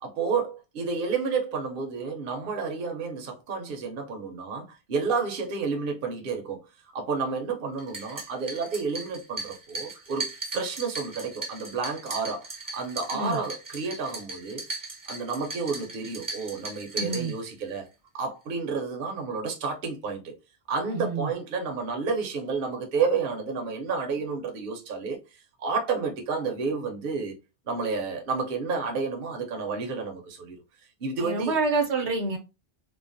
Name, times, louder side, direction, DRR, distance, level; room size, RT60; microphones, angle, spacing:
voice 1, 0.0-6.6 6.9-12.5 12.7-14.6 15.1-17.9 18.1-20.3 20.7-25.2 25.6-27.3 27.7-30.6 31.0-31.6, right 4 dB, 60° right, 0.8 m, -30 dB
sound 1, 7.8-17.8, right 3 dB, 25° right, 0.5 m, -38 dB
voice 2, 16.9-17.3 20.9-21.3 31.2-32.4, right 3 dB, 85° right, 1.1 m, -27 dB
3.0 x 2.0 x 2.5 m
omnidirectional pair, 1.1 m